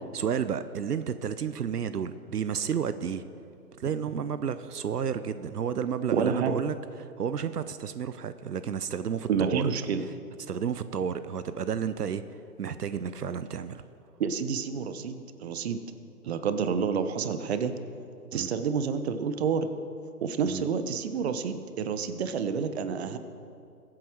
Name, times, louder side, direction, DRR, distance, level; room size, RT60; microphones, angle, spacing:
voice 1, 0.1-3.3 3.8-9.7 10.0-10.1 10.5-13.8 18.3-18.5 20.4-20.7, right 7 dB, 80° right, 12 dB, 0.8 m, -31 dB
voice 2, 6.1-6.6 9.3-10.0 14.2-15.8 16.2-17.7 18.3-19.7 20.2-23.2, right 6 dB, 45° right, 10 dB, 1.0 m, -29 dB
22.5 x 8.7 x 4.6 m, 2.5 s
hypercardioid pair, 140°, 46 cm